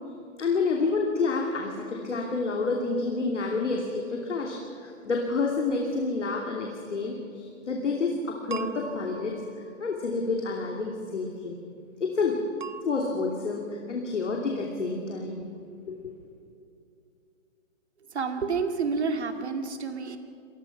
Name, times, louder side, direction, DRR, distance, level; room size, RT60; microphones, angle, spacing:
voice 1, 0.4-9.3 9.8-11.5 12.0-12.4 12.8-15.4 15.9-16.1, left 4 dB, 60° left, 0 dB, 2.9 m, -29 dB
sound 1, 8.5-10.1 12.6-12.8, right 6 dB, 35° right, 0.9 m, -40 dB
voice 2, 18.1-20.2, right 5 dB, 55° right, 6 dB, 2.4 m, -29 dB
26.5 x 20.0 x 6.0 m, 2.5 s
hypercardioid pair, 165°, 40 cm